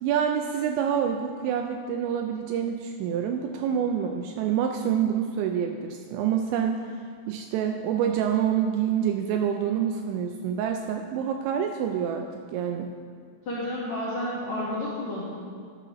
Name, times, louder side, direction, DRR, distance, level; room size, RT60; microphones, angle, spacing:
voice 1, 0.0-6.9 7.3-12.9, right 8 dB, 85° right, 4 dB, 2.8 m, -27 dB
voice 2, 13.5-15.2, left 1 dB, 60° left, -8 dB, 2.0 m, -31 dB
12.0 x 12.0 x 3.0 m, 2.1 s
omnidirectional pair, 5.4 m